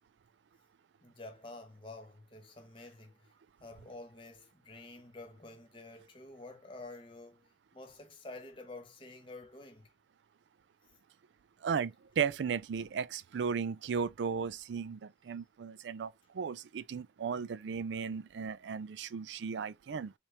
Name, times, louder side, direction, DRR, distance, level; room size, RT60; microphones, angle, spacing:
voice 1, 1.0-3.3 3.6-9.9 10.9-11.0, left 2 dB, 30° left, 1.0 m, -49 dB
voice 2, 11.6-20.1, right 6 dB, 85° right, 0.4 m, -35 dB
4.2 x 3.5 x 2.8 m
head